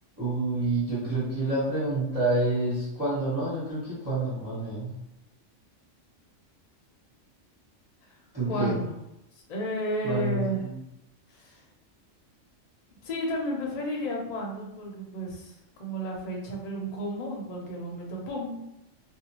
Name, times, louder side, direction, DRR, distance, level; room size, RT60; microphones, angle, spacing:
voice 1, 0.2-4.9 8.3-8.7 10.0-10.7, right 2 dB, 15° right, -9 dB, 0.8 m, -28 dB
voice 2, 8.5-8.9 9.5-10.6 11.4-11.6 13.0-15.5 15.8-18.6, equal, 45° left, -1 dB, 0.6 m, -32 dB
2.6 x 2.1 x 2.9 m, 0.87 s
omnidirectional pair, 1.3 m